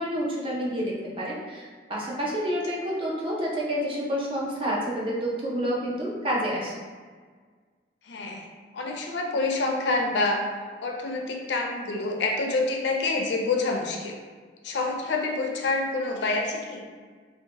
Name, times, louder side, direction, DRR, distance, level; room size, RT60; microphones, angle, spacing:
voice 1, 0.0-6.7, equal, 30° right, -5 dB, 0.5 m, -29 dB
voice 2, 8.1-8.5 8.7-10.4 10.8-14.2 14.6-16.8, left 3 dB, 80° left, 1 dB, 0.4 m, -27 dB
2.7 x 2.1 x 2.7 m, 1.5 s
head